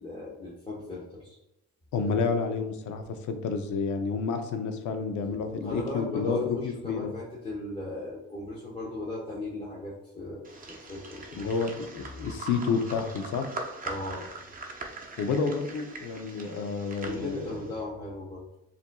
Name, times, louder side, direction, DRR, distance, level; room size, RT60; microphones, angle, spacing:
voice 1, 0.0-1.4 5.6-11.5 13.8-14.3 17.0-18.5, left 2 dB, 20° left, -6 dB, 0.9 m, -37 dB
voice 2, 1.9-7.1 11.3-13.4 15.2-17.5, left 5 dB, 75° left, 6 dB, 0.6 m, -30 dB
sound 1, 10.4-17.7, right 3 dB, 30° right, 0.7 m, -42 dB
7.0 x 2.6 x 2.3 m, 0.90 s
cardioid pair, 90°, 30 cm